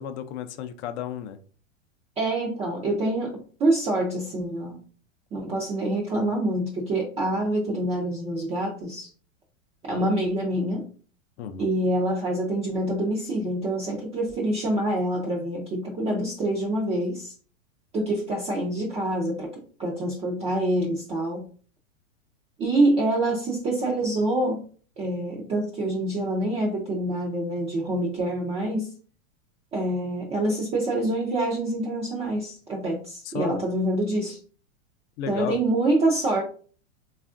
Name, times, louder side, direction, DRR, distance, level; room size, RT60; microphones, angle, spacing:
voice 1, 0.0-1.4 11.4-11.7 33.2-33.6 35.2-35.6, left 9 dB, 55° left, 0.5 m, -33 dB
voice 2, 2.2-4.8 5.3-9.1 9.8-10.9 11.6-17.3 17.9-21.5 22.6-24.6 25.0-28.9 29.7-34.4 35.3-36.4, right 1 dB, 15° right, 0.4 m, -26 dB
3.3 x 2.4 x 2.4 m
hypercardioid pair, 120°, 39 cm